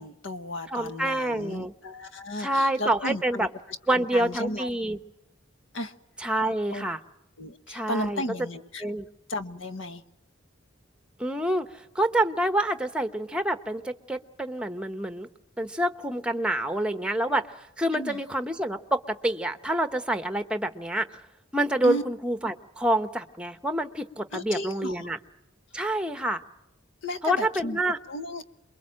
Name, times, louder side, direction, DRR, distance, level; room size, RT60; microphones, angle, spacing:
voice 1, 0.0-3.5 3.9-4.7 5.7-5.9 6.7-6.9 7.4-8.8 9.3-10.0 17.9-18.2 21.8-22.0 24.3-25.1 27.0-27.8 28.1-28.4, equal, 70° left, 10 dB, 1.3 m, -34 dB
voice 2, 0.7-1.7 2.4-3.5 3.9-5.0 6.2-7.0 7.7-8.2 8.8-9.1 11.2-15.3 15.6-21.2 21.5-25.2 25.7-26.4 27.2-28.0, right 1 dB, 5° right, 9 dB, 0.9 m, -27 dB
28.0 x 22.5 x 7.6 m, 0.84 s
head